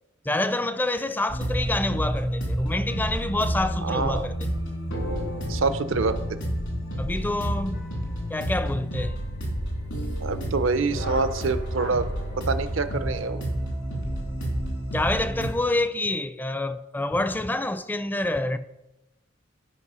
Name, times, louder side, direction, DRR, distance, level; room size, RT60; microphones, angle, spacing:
voice 1, 0.3-4.4 7.0-7.9 8.3-9.2 14.9-18.6, left 2 dB, 10° left, 0.4 m, -27 dB
sound 1, 1.3-15.5, equal, 85° left, 3.4 m, -30 dB
voice 2, 3.8-4.2 5.5-6.2 10.2-12.1 12.5-13.5, right 4 dB, 75° right, 0.6 m, -26 dB
11.0 x 5.3 x 5.6 m
head